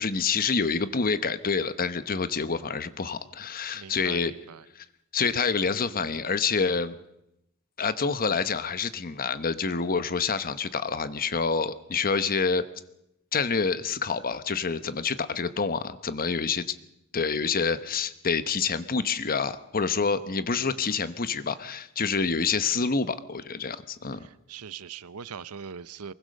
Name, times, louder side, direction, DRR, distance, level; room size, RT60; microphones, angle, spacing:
voice 1, 0.0-4.3 4.8-4.9 5.1-7.0 7.8-12.7 13.3-16.7 17.1-24.3, left 5 dB, 40° left, 1.0 m, -27 dB
voice 2, 3.7-4.7 24.2-26.1, right 6 dB, 85° right, 0.7 m, -41 dB
23.5 x 21.0 x 6.6 m
head